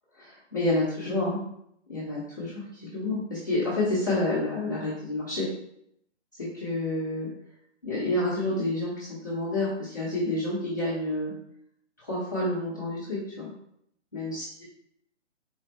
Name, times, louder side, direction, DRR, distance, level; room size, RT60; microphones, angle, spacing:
voice 1, 0.1-1.4 1.9-5.5 6.3-7.3 7.8-11.3 12.0-13.5 14.1-14.6, left 2 dB, 15° left, -11 dB, 0.7 m, -29 dB
4.2 x 3.1 x 4.1 m, 0.73 s
hypercardioid pair, 175°, 36 cm